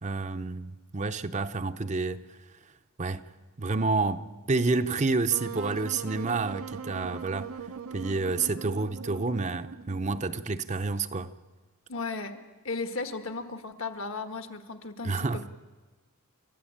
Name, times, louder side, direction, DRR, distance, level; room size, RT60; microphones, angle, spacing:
voice 1, 0.0-2.2 3.0-3.2 3.6-4.2 4.5-7.5 7.9-11.3 15.0-15.5, right 3 dB, 35° right, 0.7 m, -29 dB
Wind instrument woodwind instrument, 5.3-10.4, right 5 dB, 75° right, 0.8 m, -40 dB
voice 2, 11.9-12.4 12.6-15.5, left 3 dB, 60° left, 1.6 m, -35 dB
28.5 x 13.5 x 8.8 m
head